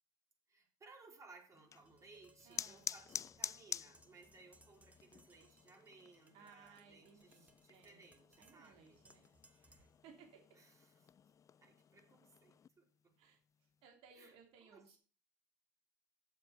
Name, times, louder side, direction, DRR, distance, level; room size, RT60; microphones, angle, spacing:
voice 1, 0.5-9.0 10.6-11.1 11.6-13.1 14.1-14.4 14.6-15.0, right 3 dB, 30° right, 2 dB, 4.1 m, -62 dB
sound 1, 1.5-12.7, left 8 dB, 35° left, 0.4 m, -50 dB
Tap, 1.8-10.0, right 1 dB, 15° right, 1.9 m, -70 dB
voice 2, 2.4-2.8 6.3-8.1 8.4-9.3 9.6-10.4 13.2-15.0, right 6 dB, 70° right, 3 dB, 3.0 m, -63 dB
7.6 x 7.2 x 7.1 m, 0.38 s
supercardioid pair, 90°, 10 cm